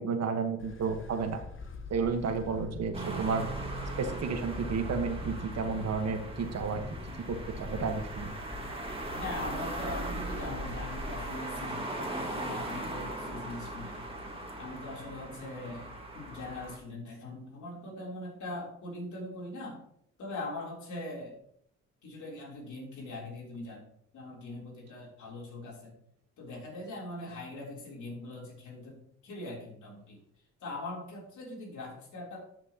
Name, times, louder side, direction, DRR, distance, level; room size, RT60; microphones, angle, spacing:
voice 1, 0.0-1.4 1.9-3.5 4.0-6.8 7.3-8.3, right 5 dB, 60° right, 6 dB, 1.4 m, -32 dB
sound 1, 0.6-11.3, left 4 dB, 40° left, 1.1 m, -44 dB
sound 2, 2.9-16.8, right 2 dB, 20° right, 1.9 m, -39 dB
voice 2, 9.2-14.1 14.6-19.8 20.2-21.4 22.0-23.9 24.1-25.9 26.4-30.2 30.6-32.4, left 2 dB, 75° left, -2 dB, 3.6 m, -41 dB
12.5 x 6.1 x 3.0 m, 0.68 s
cardioid pair, 90°, 30 cm